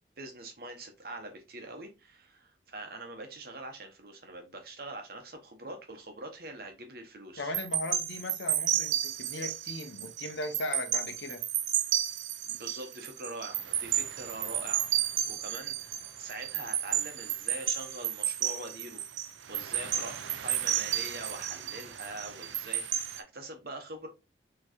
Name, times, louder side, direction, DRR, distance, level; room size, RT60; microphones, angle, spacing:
voice 1, 0.2-7.5 12.4-19.0 19.5-24.1, right 2 dB, 55° right, 1.0 m, -44 dB
voice 2, 7.4-11.4, left 2 dB, 80° left, 0.8 m, -38 dB
sound 1, 7.5-23.2, right 11 dB, 85° right, 0.5 m, -32 dB
4.4 x 3.0 x 2.9 m
head